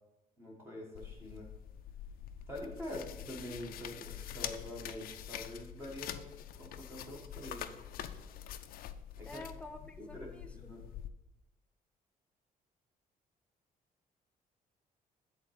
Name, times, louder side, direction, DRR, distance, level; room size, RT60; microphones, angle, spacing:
voice 1, 0.4-1.5 2.5-6.2 6.6-7.7 9.2-9.4 10.0-10.8, left 1 dB, 15° right, -2 dB, 1.3 m, -45 dB
sound 1, 0.9-11.1, left 10 dB, 75° left, 0.4 m, -45 dB
voice 2, 9.3-10.7, left 2 dB, 10° left, 6 dB, 0.5 m, -49 dB
8.1 x 4.0 x 5.8 m, 0.99 s
cardioid pair, 180°, 15 cm